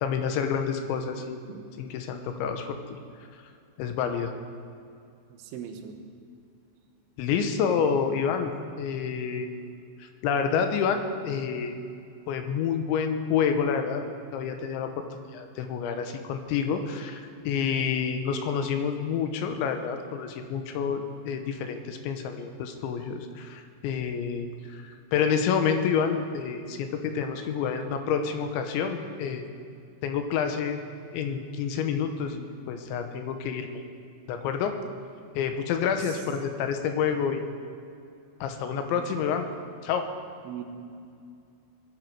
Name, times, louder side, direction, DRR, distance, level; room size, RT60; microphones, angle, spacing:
voice 1, 0.0-1.4 1.8-2.8 3.8-4.3 7.2-8.5 8.8-9.5 10.0-11.7 12.3-14.0 14.3-15.0 15.3-29.4 30.0-30.8 31.1-33.8 34.3-34.7 35.4-37.4 38.4-39.5 39.8-40.1, left 7 dB, 75° left, 6 dB, 3.1 m, -28 dB
voice 2, 5.3-6.0 36.0-36.2 38.9-39.1 40.5-40.6, right 9 dB, 75° right, 5 dB, 3.4 m, -40 dB
21.5 x 13.0 x 4.8 m, 2.4 s
omnidirectional pair, 5.7 m